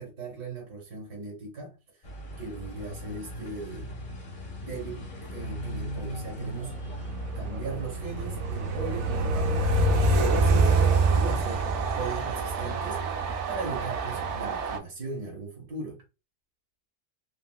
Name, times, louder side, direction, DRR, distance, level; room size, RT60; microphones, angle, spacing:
voice 1, 0.0-1.8 2.4-3.9 4.6-6.8 7.4-9.5 9.9-10.8 11.1-13.1 13.5-16.0, right 3 dB, 90° right, 1.8 m, -38 dB
sound 1, 2.0-11.6, equal, 45° left, 0.7 m, -39 dB
Train, 6.4-14.8, right 3 dB, 65° right, 0.7 m, -26 dB
4.2 x 2.0 x 2.2 m
omnidirectional pair, 1.6 m